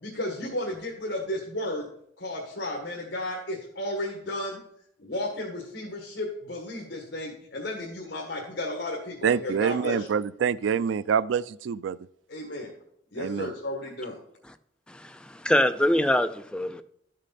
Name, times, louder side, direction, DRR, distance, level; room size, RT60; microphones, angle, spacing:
voice 1, 0.0-1.8 2.2-4.6 5.0-10.1 12.3-12.7 13.1-14.2, left 1 dB, 65° left, 1.6 m, -33 dB
voice 2, 9.2-12.0 13.2-13.5, right 7 dB, 85° right, 0.3 m, -26 dB
voice 3, 14.9-16.8, left 1 dB, 5° left, 0.4 m, -24 dB
12.5 x 6.5 x 4.2 m
head